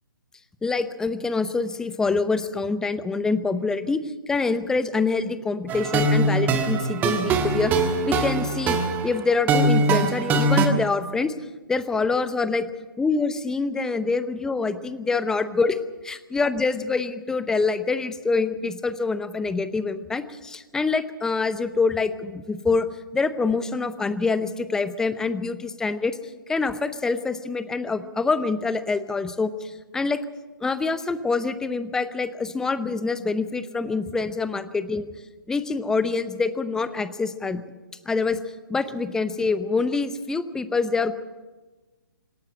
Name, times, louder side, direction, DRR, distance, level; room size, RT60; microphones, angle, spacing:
voice 1, 0.6-4.0 4.3-11.3 11.7-12.7 13.0-15.8 16.0-22.9 23.1-26.2 26.5-30.2 30.6-35.1 35.5-37.6 38.1-38.4 38.7-41.1, left 4 dB, 5° left, 13 dB, 0.8 m, -25 dB
sound 1, 5.7-10.7, right 2 dB, 15° right, 1.6 m, -22 dB
26.5 x 11.5 x 8.9 m, 1.2 s
figure-of-eight pair, 135°, 11 cm